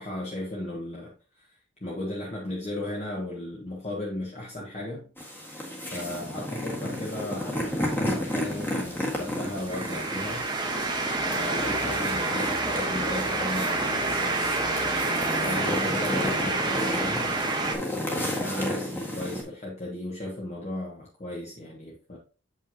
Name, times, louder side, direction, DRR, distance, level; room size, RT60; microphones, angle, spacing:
voice 1, 0.0-5.1 5.8-10.8 11.3-14.5 14.8-17.3 18.0-22.2, left 1 dB, 35° left, 1.3 m, -36 dB
sound 1, 5.2-19.4, left 1 dB, 10° left, 1.6 m, -32 dB
sound 2, 7.6-17.8, right 3 dB, 20° right, 1.1 m, -29 dB
7.8 x 5.5 x 2.8 m
head